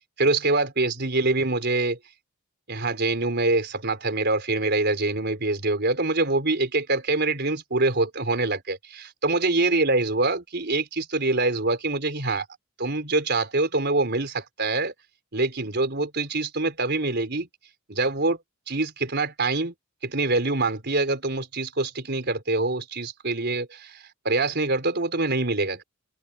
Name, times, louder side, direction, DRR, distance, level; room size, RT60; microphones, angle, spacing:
voice 1, 0.2-2.0 2.7-12.5 12.8-14.9 15.3-17.5 17.9-18.4 18.7-19.7 20.0-25.8, right 2 dB, 50° right, 4.4 m, -25 dB
open air
head